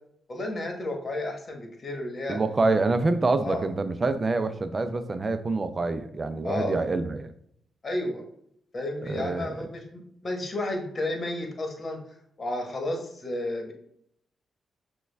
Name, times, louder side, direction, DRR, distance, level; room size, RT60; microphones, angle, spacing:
voice 1, 0.3-2.4 3.4-3.6 6.4-6.7 7.8-8.2 8.7-12.0 12.4-13.7, left 1 dB, 45° left, 2 dB, 1.2 m, -32 dB
voice 2, 2.3-7.3 9.0-9.7, right 3 dB, 40° right, 10 dB, 0.5 m, -26 dB
6.1 x 2.3 x 3.4 m, 0.69 s
supercardioid pair, 45°, 0 cm